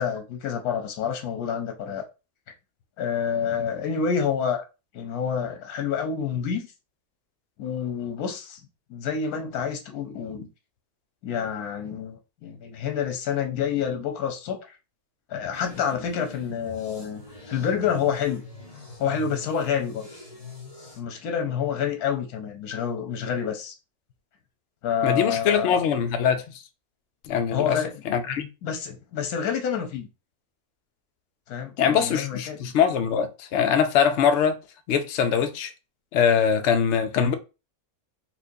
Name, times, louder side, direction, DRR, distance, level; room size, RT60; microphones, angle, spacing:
voice 1, 0.0-2.0 3.0-4.6 4.9-6.7 7.6-8.6 8.9-10.5 11.2-14.6 15.3-17.2 17.5-18.4 19.0-20.1 21.0-23.7 24.8-25.8 27.5-27.9 28.6-30.1 31.5-32.6, left 7 dB, 85° left, 1.2 m, -28 dB
sound 1, 15.5-21.0, left 1 dB, 30° left, 0.8 m, -43 dB
voice 2, 25.0-26.6 27.2-27.8 28.1-28.5 31.8-34.6 34.9-35.7 36.1-37.3, left 7 dB, 65° left, 0.7 m, -22 dB
4.4 x 2.4 x 2.6 m
omnidirectional pair, 1.6 m